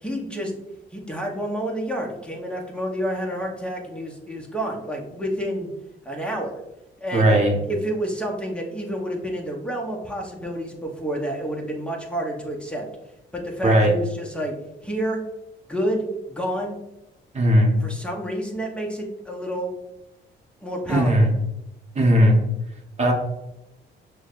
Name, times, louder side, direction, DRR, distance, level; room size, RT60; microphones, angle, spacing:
voice 1, 0.0-0.5 0.9-5.7 6.0-6.5 7.0-7.3 7.7-12.9 13.3-14.5 14.8-15.2 15.7-16.8 17.8-19.7 20.6-21.3, equal, 5° left, -1 dB, 0.9 m, -29 dB
voice 2, 7.1-7.5 13.6-13.9 17.3-17.8 20.9-21.3 21.9-22.4 23.0-23.1, equal, 35° right, 0 dB, 1.0 m, -17 dB
6.0 x 2.2 x 2.5 m, 0.93 s
cardioid pair, 90°, 20 cm